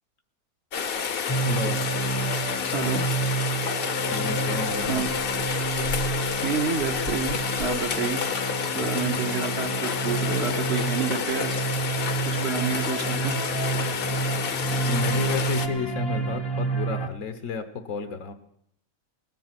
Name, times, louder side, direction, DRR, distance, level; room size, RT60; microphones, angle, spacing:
Rain, 0.7-15.7, left 6 dB, 50° left, 0.9 m, -29 dB
sound 1, 1.3-17.1, right 3 dB, 25° left, 0.7 m, -29 dB
voice 1, 1.4-1.8 4.1-5.0 8.6-8.9 14.9-18.3, left 5 dB, 75° left, 9 dB, 1.3 m, -32 dB
voice 2, 2.7-3.0 4.9-5.1 6.4-11.6 12.2-13.5, right 6 dB, 55° right, 3 dB, 1.1 m, -29 dB
19.0 x 7.6 x 5.9 m, 0.73 s
omnidirectional pair, 1.4 m